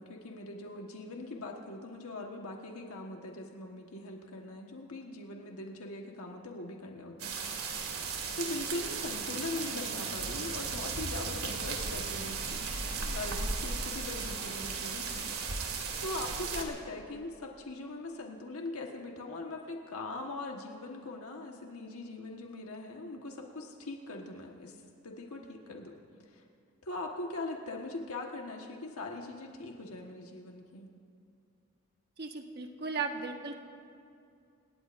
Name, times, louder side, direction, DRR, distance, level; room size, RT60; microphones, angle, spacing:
voice 1, 0.0-7.3 8.3-15.3 15.6-24.8 25.0-25.9 26.3-26.4 26.8-30.9, left 2 dB, 85° left, 1 dB, 1.4 m, -41 dB
sound 1, 7.2-16.6, right 5 dB, 85° right, 2.0 m, -36 dB
voice 2, 32.2-33.6, right 4 dB, 50° right, 3 dB, 1.4 m, -36 dB
28.5 x 18.0 x 2.6 m, 2.5 s
head